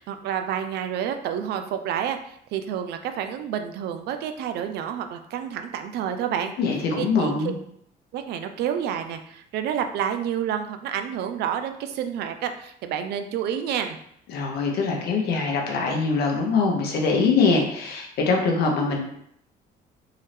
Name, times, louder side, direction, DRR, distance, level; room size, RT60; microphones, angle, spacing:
voice 1, 0.0-2.2 2.5-6.5 7.0-7.5 8.1-14.0, right 9 dB, 75° right, 7 dB, 0.5 m, -29 dB
voice 2, 6.6-7.6 14.3-19.0, left 4 dB, 70° left, 1 dB, 1.0 m, -23 dB
3.8 x 2.7 x 3.3 m, 0.70 s
cardioid pair, 110°, 17 cm